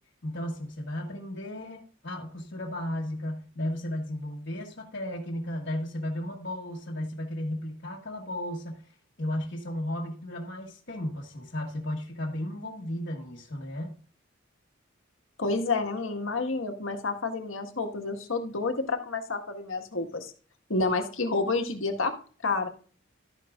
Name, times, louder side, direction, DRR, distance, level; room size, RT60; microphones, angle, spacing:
voice 1, 0.2-8.9 9.2-14.0, left 1 dB, 60° left, -3 dB, 1.5 m, -34 dB
voice 2, 15.4-20.3 20.7-22.1 22.4-22.7, left 3 dB, 80° left, 5 dB, 1.6 m, -29 dB
12.5 x 9.7 x 2.5 m, 0.40 s
head